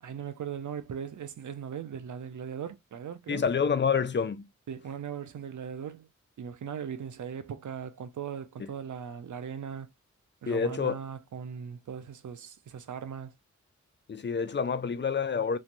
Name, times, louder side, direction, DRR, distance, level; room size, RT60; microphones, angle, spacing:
voice 1, 0.0-3.4 4.7-6.1 6.4-9.9 10.4-13.3, right 8 dB, 90° right, 0.5 m, -39 dB
voice 2, 3.3-4.5 8.6-8.7 10.5-11.0 14.1-15.6, left 6 dB, 40° left, 0.4 m, -28 dB
3.1 x 2.1 x 2.5 m
wide cardioid pair, 70°, 29 cm